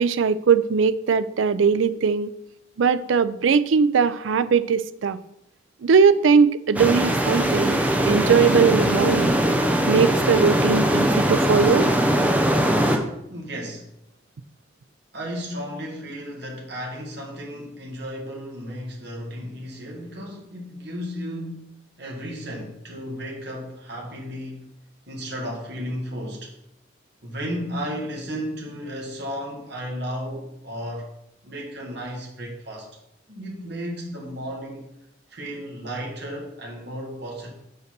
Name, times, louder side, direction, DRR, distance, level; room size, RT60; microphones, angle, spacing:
voice 1, 0.0-2.3 2.8-5.2 5.8-9.4 9.9-11.9, right 5 dB, 75° right, 14 dB, 0.4 m, -20 dB
sound 1, 6.8-13.0, equal, 10° right, 0.8 m, -21 dB
voice 2, 13.3-13.9 15.1-24.7 25.1-26.5 27.2-31.1 31.4-32.9 33.3-34.9 35.3-37.5, equal, 55° right, -1 dB, 1.8 m, -34 dB
6.5 x 5.6 x 5.9 m, 0.80 s
head